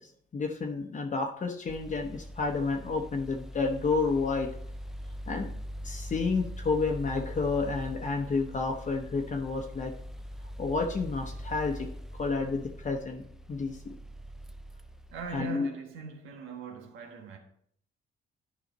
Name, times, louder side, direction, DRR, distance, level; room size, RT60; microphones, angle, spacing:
voice 1, 0.3-4.5 5.3-5.5 5.8-9.9 10.6-11.9 12.2-13.9 15.3-15.7, left 4 dB, 40° left, 0.9 m, -30 dB
sound 1, 1.7-15.4, equal, ahead, 0.4 m, -42 dB
voice 2, 15.1-17.4, right 4 dB, 90° right, 1.4 m, -40 dB
10.5 x 4.9 x 4.0 m
cardioid pair, 90°, 20 cm